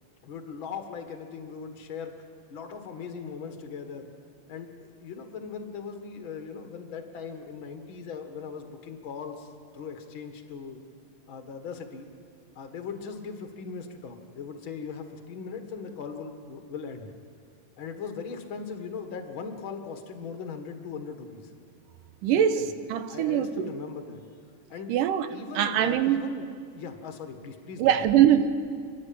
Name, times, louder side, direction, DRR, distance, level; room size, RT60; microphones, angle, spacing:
voice 1, 0.2-2.2 2.5-4.1 4.5-10.8 11.3-12.1 12.6-17.1 17.8-21.5 22.3-22.7 23.1-24.2 24.7-24.9 25.3-26.5 26.7-28.0, left 5 dB, 45° left, 6 dB, 2.0 m, -39 dB
voice 2, 22.2-23.7 24.9-25.3 25.6-26.3 27.8-28.5, right 10 dB, 80° right, 10 dB, 2.4 m, -23 dB
29.5 x 11.5 x 8.8 m, 2.2 s
omnidirectional pair, 3.9 m